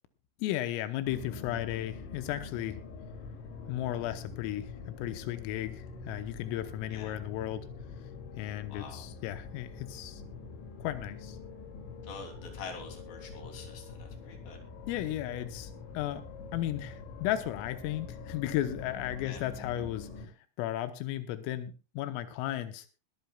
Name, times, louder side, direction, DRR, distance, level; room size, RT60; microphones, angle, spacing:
voice 1, 0.4-2.8 3.7-7.7 8.4-10.2 10.8-11.4 14.9-16.2 16.5-22.9, left 13 dB, 90° left, 10 dB, 3.6 m, -35 dB
sound 1, 1.1-20.3, left 4 dB, 65° left, 4.8 m, -45 dB
voice 2, 8.7-9.0 12.0-14.6 19.2-19.4, left 4 dB, 50° left, 3 dB, 4.4 m, -46 dB
22.0 x 14.0 x 2.3 m, 0.31 s
omnidirectional pair, 5.8 m